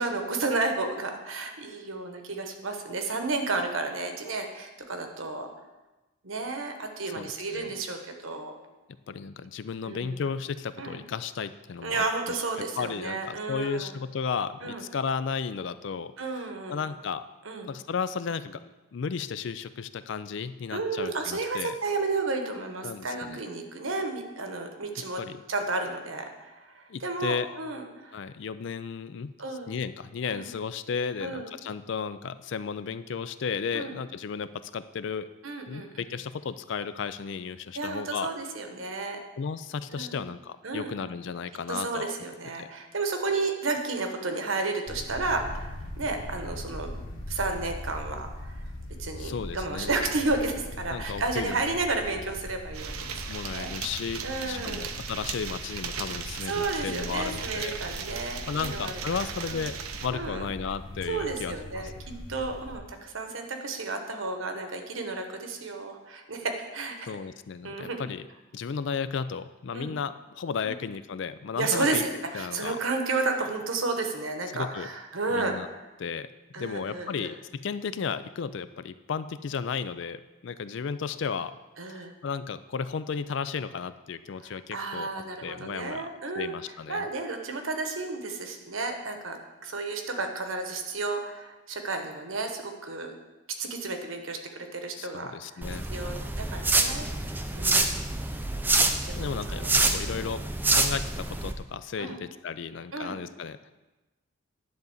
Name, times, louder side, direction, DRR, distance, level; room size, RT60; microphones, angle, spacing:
voice 1, 0.0-5.5 6.2-8.5 9.8-10.2 10.8-11.0 11.8-13.9 14.6-14.8 16.2-16.8 17.4-17.7 20.7-25.2 25.5-28.2 29.4-29.7 30.3-30.5 31.2-31.5 33.7-33.9 35.4-36.0 37.7-39.2 39.9-40.2 40.6-40.9 41.7-47.0 47.3-48.5 49.0-53.2 53.5-53.7 54.2-54.9 56.5-58.9 59.5-59.7 60.1-60.5 61.1-67.1 67.6-68.0 69.7-69.9 70.6-70.8 71.5-75.6 76.5-77.3 81.8-82.1 84.7-86.5 86.9-93.1 93.6-95.6 95.9-97.1 97.5-98.1 99.0-99.8 102.0-102.2 102.9-103.2, right 3 dB, 70° right, 5 dB, 1.1 m, -32 dB
voice 2, 7.2-7.7 9.1-12.4 12.8-17.2 17.6-21.8 22.8-23.4 25.2-25.4 26.9-27.5 28.1-29.3 29.7-35.3 35.7-38.3 39.4-42.1 42.6-42.7 49.2-49.9 50.9-51.6 53.3-57.7 58.5-61.9 67.1-68.3 68.5-72.0 72.3-72.8 74.5-74.9 75.3-75.7 76.0-76.3 76.6-81.5 81.9-82.0 82.2-85.1 85.4-86.1 86.3-87.1 95.0-95.9 99.2-100.4 100.7-103.7, left 6 dB, 55° left, 13 dB, 0.4 m, -34 dB
sound 1, 44.9-62.8, left 1 dB, 85° left, 1.2 m, -41 dB
sound 2, 52.7-60.1, right 7 dB, 90° right, 0.7 m, -38 dB
sound 3, 95.6-101.5, right 2 dB, 10° right, 0.4 m, -27 dB
10.5 x 3.9 x 7.1 m, 1.1 s
head